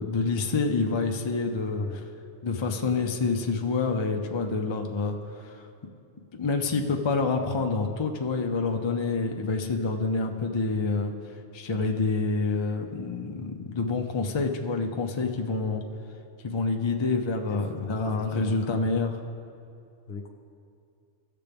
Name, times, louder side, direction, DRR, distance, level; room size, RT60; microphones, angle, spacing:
voice 1, 0.0-1.8 2.4-5.7 6.3-11.1 11.5-15.8 16.4-19.2, left 4 dB, 40° left, 3 dB, 0.4 m, -27 dB
voice 2, 17.5-18.6 20.1-20.3, left 4 dB, 60° left, 5 dB, 0.9 m, -39 dB
16.0 x 6.7 x 3.5 m, 2.5 s
omnidirectional pair, 1.3 m